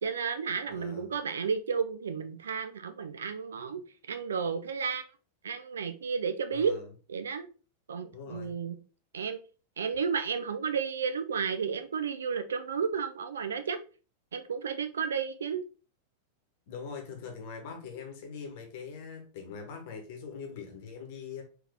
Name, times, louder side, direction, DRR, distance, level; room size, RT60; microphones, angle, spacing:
voice 1, 0.0-5.0 5.4-6.7 7.1-7.5 7.9-8.8 9.1-9.4 9.8-13.8 14.3-15.6, right 6 dB, 65° right, 0.3 m, -32 dB
voice 2, 0.7-1.1 6.5-6.9 8.1-8.5 16.7-21.4, left 6 dB, 50° left, 1.0 m, -42 dB
3.7 x 2.8 x 3.4 m
figure-of-eight pair, 90°, 0 cm